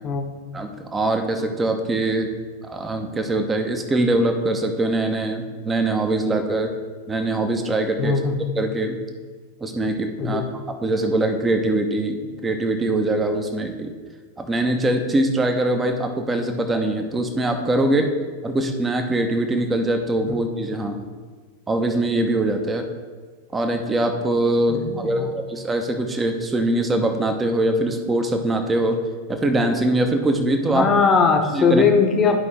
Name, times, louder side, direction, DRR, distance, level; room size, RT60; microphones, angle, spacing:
voice 1, 0.5-2.3 2.6-6.7 7.1-8.1 8.6-9.0 9.6-10.4 10.8-12.2 12.4-13.9 14.4-18.1 18.4-21.0 21.7-22.9 23.5-29.0 29.3-30.9 31.5-31.8, right 2 dB, 15° right, 5 dB, 0.9 m, -22 dB
voice 2, 8.0-8.4 10.2-10.5 20.3-20.4 24.7-25.3 30.7-32.4, left 5 dB, 25° left, 3 dB, 1.0 m, -20 dB
11.5 x 5.0 x 3.3 m, 1.5 s
figure-of-eight pair, 90°, 0 cm